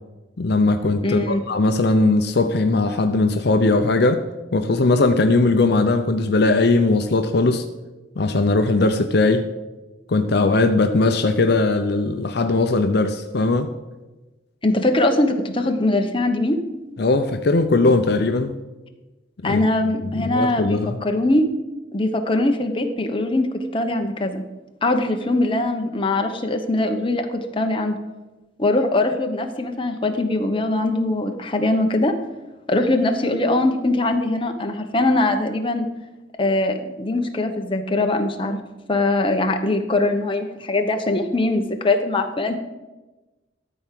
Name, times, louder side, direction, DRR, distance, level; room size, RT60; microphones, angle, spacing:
voice 1, 0.4-4.2 4.5-7.6 8.2-9.5 10.1-13.7 17.0-18.6 19.4-19.6 20.0-21.0, left 3 dB, 60° left, 7 dB, 0.6 m, -19 dB
voice 2, 1.0-1.4 14.6-16.6 19.4-21.5 21.9-24.4 24.8-28.0 28.6-32.1 32.7-35.9 36.4-38.6 38.9-42.5, left 2 dB, 30° left, 4 dB, 1.0 m, -21 dB
13.5 x 4.6 x 7.5 m, 1.1 s
head